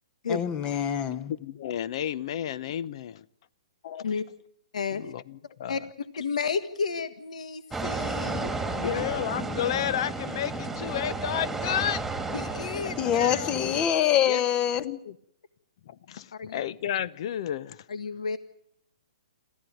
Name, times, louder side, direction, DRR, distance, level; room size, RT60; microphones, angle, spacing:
voice 1, 0.3-1.3 13.0-14.8, left 10 dB, 25° left, 1.1 m, -25 dB
voice 2, 1.3-3.2 3.8-4.0 4.9-5.8 8.7-12.0 13.3-13.4 14.3-14.4 14.8-15.1 15.9-17.8, left 10 dB, 50° left, 0.9 m, -32 dB
voice 3, 6.2-8.5 8.8-9.0 12.3-13.6 16.3-16.6 17.9-18.4, left 5 dB, 80° left, 1.7 m, -32 dB
sound 1, 7.7-13.8, right 3 dB, 5° right, 2.2 m, -33 dB
27.0 x 15.0 x 9.3 m
hypercardioid pair, 150°, 4 cm